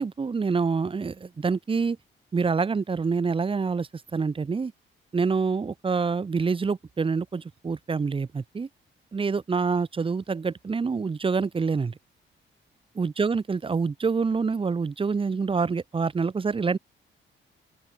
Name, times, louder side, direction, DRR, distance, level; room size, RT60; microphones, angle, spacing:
voice 1, 0.0-2.0 2.3-4.7 5.1-8.7 9.1-11.9 12.9-16.8, right 5 dB, 25° right, 1.4 m, -26 dB
open air
wide cardioid pair, 160°, 21 cm